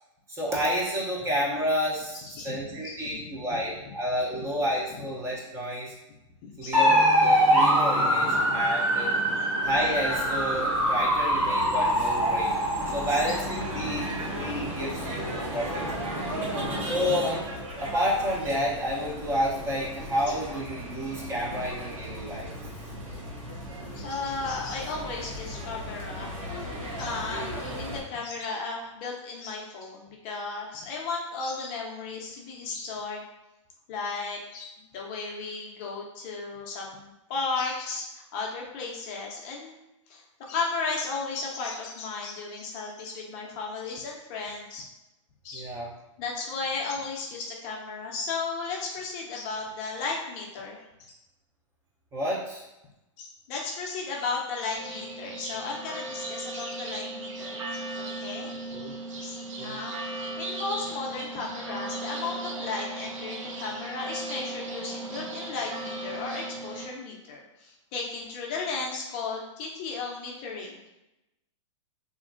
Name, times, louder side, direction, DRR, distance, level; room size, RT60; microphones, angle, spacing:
voice 1, 0.3-5.9 6.6-9.1 9.6-14.1 14.3-16.1 16.9-17.4 17.8-22.5 45.5-45.9 52.1-52.6 58.7-59.0 59.6-59.8, equal, 15° right, -4 dB, 0.6 m, -30 dB
voice 2, 2.1-3.4 6.5-6.8 8.2-8.6 16.4-16.9 23.9-33.2 33.9-39.8 40.1-44.8 45.4-45.7 46.2-51.2 53.2-58.6 59.2-70.9, left 4 dB, 35° left, -1 dB, 0.5 m, -35 dB
sound 1, 6.7-17.4, equal, 35° right, 1.4 m, -25 dB
sound 2, 9.6-28.0, equal, 90° right, 1.1 m, -37 dB
sound 3, 54.7-66.9, right 2 dB, 70° right, 0.6 m, -37 dB
2.8 x 2.5 x 2.4 m, 0.94 s
hypercardioid pair, 140°, 17 cm